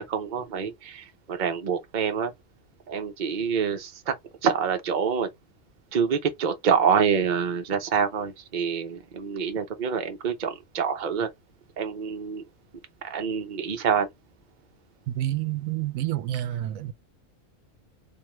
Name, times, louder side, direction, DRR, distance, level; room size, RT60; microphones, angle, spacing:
voice 1, 0.0-2.3 2.9-4.1 4.4-5.3 5.9-11.3 11.8-12.4 13.0-14.1, right 6 dB, 40° right, 0.8 m, -26 dB
voice 2, 15.1-16.9, right 14 dB, 85° right, 1.0 m, -29 dB
3.5 x 2.6 x 3.0 m
omnidirectional pair, 1.4 m